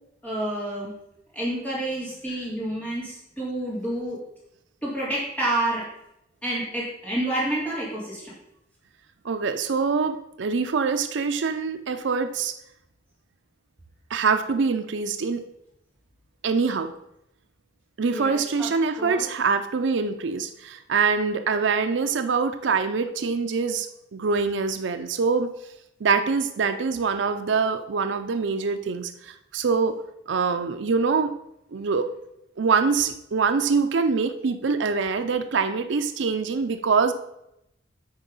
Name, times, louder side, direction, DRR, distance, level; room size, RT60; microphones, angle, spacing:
voice 1, 0.2-0.9 1.3-4.2 4.8-5.9 6.4-8.3 18.0-19.3, right 1 dB, 10° left, -7 dB, 3.1 m, -29 dB
voice 2, 9.2-12.5 14.1-15.4 16.4-16.9 18.0-25.5 26.0-30.0 30.3-31.3 31.7-32.1 32.6-37.1, right 5 dB, 70° right, 8 dB, 0.5 m, -24 dB
8.9 x 4.5 x 5.3 m, 0.82 s
head